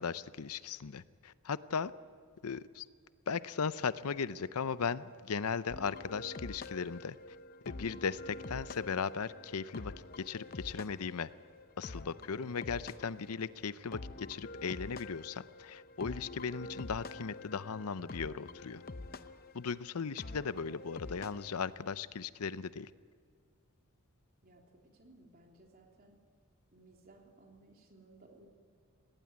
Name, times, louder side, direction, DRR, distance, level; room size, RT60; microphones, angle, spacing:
voice 1, 0.0-1.9 2.4-2.9 3.3-7.2 7.7-11.3 11.8-18.8 19.5-22.9, left 5 dB, 85° left, 16 dB, 0.6 m, -37 dB
sound 1, 5.7-21.7, left 2 dB, 40° left, 0.7 m, -47 dB
voice 2, 24.4-26.2 26.7-28.5, right 2 dB, 40° right, 1 dB, 3.3 m, -60 dB
18.5 x 18.0 x 9.6 m, 2.1 s
head